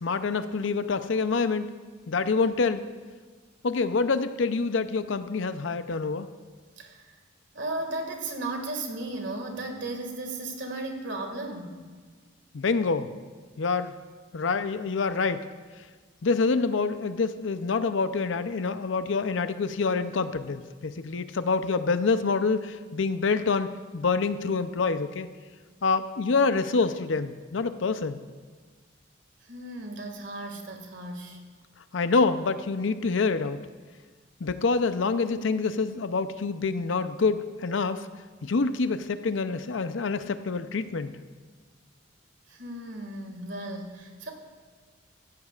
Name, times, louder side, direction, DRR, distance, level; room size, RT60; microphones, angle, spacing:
voice 1, 0.0-1.7 2.1-2.8 3.6-6.3 12.5-13.1 13.6-14.0 14.3-15.4 16.2-25.3 25.8-28.2 31.9-33.7 34.4-38.1 38.4-41.2, left 4 dB, 80° left, 11 dB, 0.6 m, -26 dB
voice 2, 6.8-7.1 7.5-11.8 29.4-31.4 42.5-44.3, right 2 dB, 70° right, 3 dB, 2.0 m, -35 dB
16.5 x 14.5 x 2.4 m, 1.5 s
head